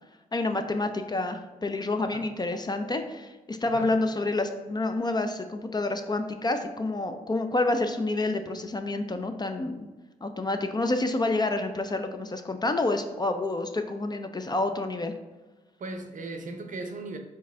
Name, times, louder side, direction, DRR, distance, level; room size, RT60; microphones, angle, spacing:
voice 1, 0.3-9.9 10.2-15.1, left 2 dB, 25° left, 7 dB, 0.5 m, -28 dB
voice 2, 15.8-17.2, right 3 dB, 50° right, 5 dB, 0.6 m, -37 dB
4.6 x 2.6 x 3.5 m, 1.2 s
supercardioid pair, 45°, 16 cm